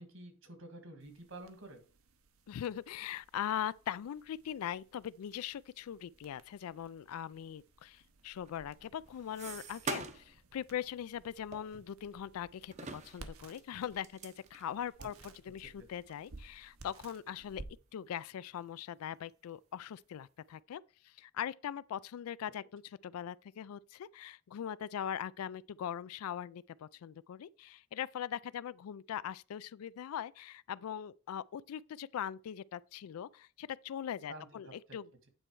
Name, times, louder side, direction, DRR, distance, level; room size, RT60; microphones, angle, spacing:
voice 1, 0.0-1.8 15.0-15.1 15.8-15.9 34.3-35.0, right 2 dB, 65° right, 1.6 m, -50 dB
sound 1, 1.0-20.6, right 2 dB, 80° right, 1.0 m, -58 dB
voice 2, 2.5-17.6 17.9-35.1, left 9 dB, 90° left, 0.3 m, -41 dB
sound 2, 8.4-10.4 10.7-10.9 11.5-12.3 12.7-15.2 15.7-15.8 16.1-16.2 16.9-17.1 17.5-18.2 18.6-19.3, right 4 dB, 30° right, 0.6 m, -45 dB
8.9 x 4.3 x 4.6 m
head